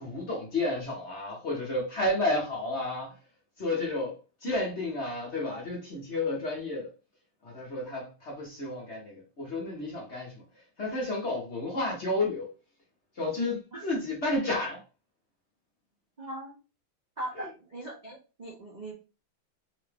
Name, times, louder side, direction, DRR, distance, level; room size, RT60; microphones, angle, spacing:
voice 1, 0.0-3.1 3.6-6.9 7.4-10.4 10.8-12.5 13.2-14.8 17.3-17.5, left 2 dB, 40° left, 1.1 m, -31 dB
voice 2, 16.2-16.6 17.2-18.9, right 1 dB, 55° right, 0.4 m, -40 dB
3.8 x 2.5 x 3.4 m
omnidirectional pair, 2.2 m